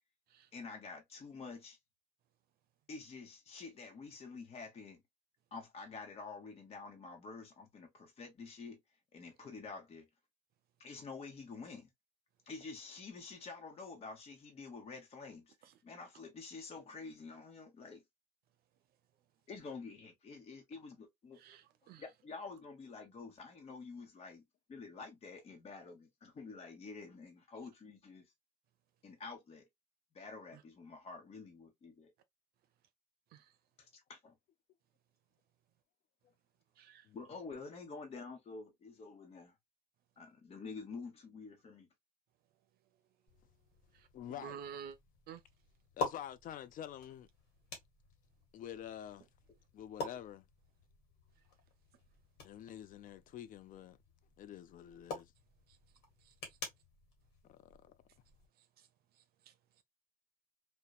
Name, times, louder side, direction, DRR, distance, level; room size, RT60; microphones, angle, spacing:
voice 1, 0.5-1.8 2.9-5.0 5.5-8.8 9.1-10.1 10.8-11.9 12.5-18.0 19.5-21.4 22.0-24.4 24.7-28.3 29.0-29.6 30.1-32.1 33.8-34.3 37.1-39.5 40.2-41.9, left 4 dB, 35° left, 0.9 m, -48 dB
voice 2, 21.4-22.0 30.5-30.6 33.3-33.5 36.8-37.1 43.9-45.0 45.3-45.4 56.3-56.4 59.5-59.6, right 7 dB, 65° right, 0.6 m, -50 dB
sound 1, 43.3-58.5, left 3 dB, 85° left, 1.2 m, -48 dB
voice 3, 44.1-44.6 46.0-47.3 48.5-49.3 49.7-50.4 52.4-54.0 54.4-55.3 57.5-57.9, left 10 dB, 55° left, 0.4 m, -47 dB
2.9 x 2.1 x 2.2 m
cardioid pair, 110°, 17 cm